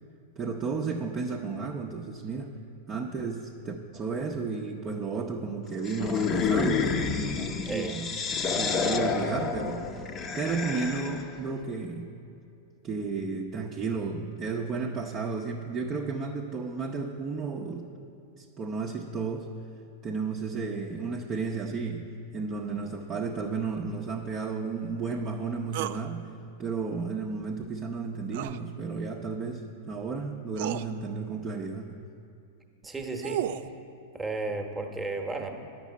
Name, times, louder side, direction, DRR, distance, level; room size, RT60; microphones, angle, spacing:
voice 1, 0.4-2.5 2.9-8.1 8.6-9.9 10.3-12.1 12.8-17.9 18.4-19.5 20.0-26.3 26.6-31.9, right 4 dB, 30° right, -1 dB, 0.7 m, -33 dB
sound 1, 5.8-11.3, left 5 dB, 30° left, 0.7 m, -29 dB
voice 2, 7.6-8.0 32.8-33.5 34.1-35.5, right 3 dB, 10° right, 3 dB, 1.0 m, -33 dB
sound 2, 25.7-26.0 28.3-28.6 29.9-30.0 30.5-30.9 32.8-33.7, right 12 dB, 60° right, 0.3 m, -33 dB
9.1 x 6.1 x 8.3 m, 2.6 s
hypercardioid pair, 120°, 0 cm